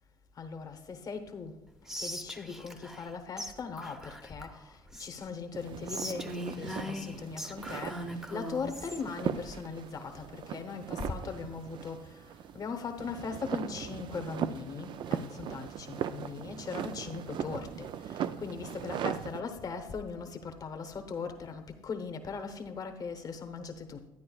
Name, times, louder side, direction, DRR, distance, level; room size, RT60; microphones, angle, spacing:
voice 1, 0.4-1.6 2.0-12.2 12.5-24.1, left 5 dB, 40° left, 6 dB, 0.9 m, -39 dB
Whispering, 1.9-3.1 3.4-3.5 3.8-5.3 5.9-9.0, equal, 5° right, 0.7 m, -40 dB
sound 1, 5.5-19.4, right 9 dB, 50° right, 0.4 m, -39 dB
11.0 x 9.3 x 2.3 m, 0.97 s
cardioid pair, 100°, 10 cm